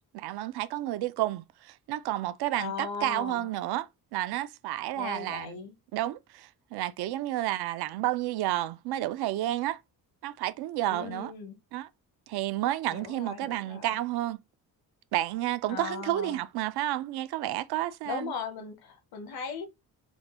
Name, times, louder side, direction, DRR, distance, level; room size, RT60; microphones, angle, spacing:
voice 1, 0.1-5.6 5.9-9.8 10.2-11.3 11.7-11.9 12.3-14.4 15.1-18.3, right 14 dB, 80° right, 0.5 m, -31 dB
voice 2, 2.5-3.5 4.9-5.7 10.9-11.6 12.9-14.0 15.7-16.4 18.0-19.7, left 5 dB, 70° left, 0.9 m, -38 dB
3.4 x 2.2 x 2.9 m
cardioid pair, 130°, 38 cm